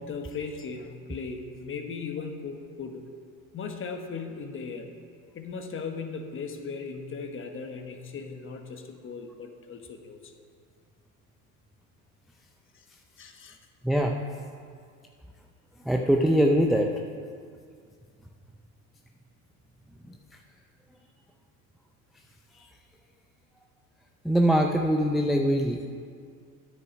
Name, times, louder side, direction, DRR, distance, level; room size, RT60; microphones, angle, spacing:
voice 1, 0.0-3.0 3.5-4.9 5.3-10.3 13.2-13.6, left 5 dB, 30° left, 5 dB, 1.2 m, -37 dB
voice 2, 15.9-16.9 24.2-25.9, equal, ahead, 2 dB, 0.4 m, -22 dB
9.7 x 8.1 x 5.2 m, 2.2 s
hypercardioid pair, 85°, 44 cm